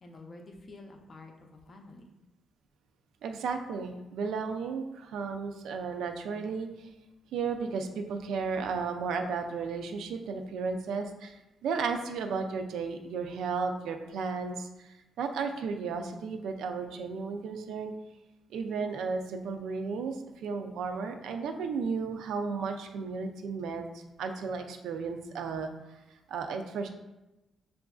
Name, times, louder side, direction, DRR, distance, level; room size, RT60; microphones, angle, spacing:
voice 1, 0.0-2.1, left 2 dB, 30° left, 3 dB, 0.5 m, -49 dB
voice 2, 3.2-6.9 7.3-17.9 18.5-26.0 26.3-26.9, right 5 dB, 85° right, 5 dB, 0.4 m, -34 dB
6.7 x 2.5 x 2.3 m, 1.0 s
cardioid pair, 165°, 0 cm